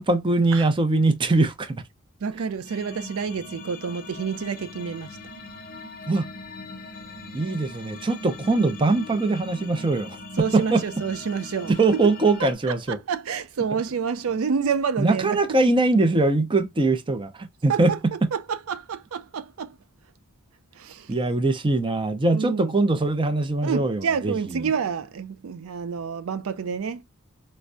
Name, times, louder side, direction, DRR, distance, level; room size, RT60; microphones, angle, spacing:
voice 1, 0.0-1.8 6.1-6.3 7.3-10.2 10.5-10.8 11.7-13.0 15.0-17.9 21.1-24.3, right 2 dB, 20° right, 0.5 m, -22 dB
voice 2, 2.2-5.2 10.4-12.0 12.4-15.6 17.7-18.0 18.3-19.8 20.7-21.2 22.3-22.8 23.6-27.0, right 6 dB, 75° right, 0.4 m, -29 dB
sound 1, 2.7-12.5, left 2 dB, 40° left, 0.7 m, -41 dB
4.3 x 2.1 x 2.5 m
head